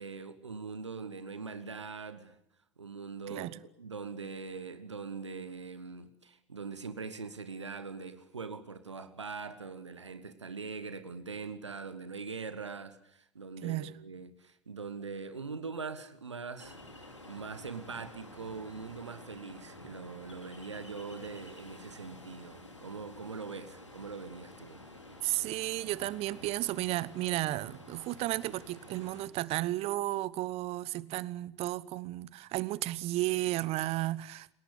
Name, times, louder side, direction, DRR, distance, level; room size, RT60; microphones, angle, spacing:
voice 1, 0.0-2.4 2.8-24.8, right 4 dB, 80° right, 1.5 m, -42 dB
voice 2, 13.6-13.9 25.2-34.5, right 17 dB, 45° right, 1.0 m, -33 dB
Ocean, 16.6-29.3, left 1 dB, 85° left, 3.0 m, -51 dB
29.5 x 18.0 x 8.3 m
figure-of-eight pair, 75°, 15 cm